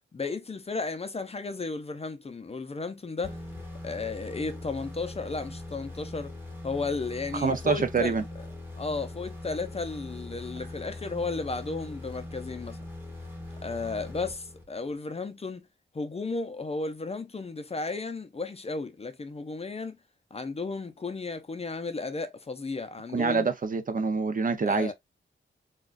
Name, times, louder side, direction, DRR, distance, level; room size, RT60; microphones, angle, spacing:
voice 1, 0.1-3.4 3.8-6.3 6.6-8.1 8.8-12.8 13.6-15.6 15.9-20.0 20.3-23.5 24.6-24.9, left 3 dB, 30° left, 0.5 m, -34 dB
sound 1, 3.2-14.9, left 2 dB, 10° right, 1.3 m, -41 dB
voice 2, 7.3-8.2 23.1-24.9, right 4 dB, 45° right, 0.7 m, -26 dB
6.0 x 2.3 x 2.5 m
wide cardioid pair, 155°, 20 cm